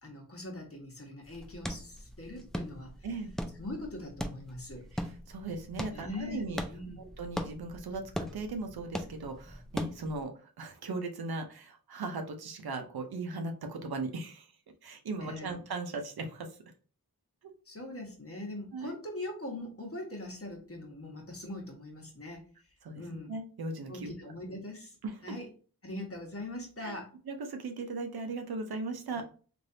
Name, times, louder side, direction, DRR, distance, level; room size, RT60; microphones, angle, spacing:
voice 1, 0.0-2.9 3.5-4.8 5.9-7.0 15.2-15.6 17.6-22.4 22.9-23.3 23.9-25.0 25.2-25.5 25.8-27.1 29.1-29.2, left 1 dB, 40° left, 1 dB, 1.2 m, -41 dB
sound 1, 1.2-10.2, equal, ahead, 0.4 m, -41 dB
voice 2, 3.0-3.3 4.9-6.6 7.0-14.5 14.8-16.6 18.7-19.0 22.8-23.0 23.3-24.3 25.0-25.2 26.8-27.0 27.3-29.2, right 3 dB, 90° right, 5 dB, 0.6 m, -38 dB
3.3 x 2.5 x 2.6 m, 0.40 s
cardioid pair, 45°, 36 cm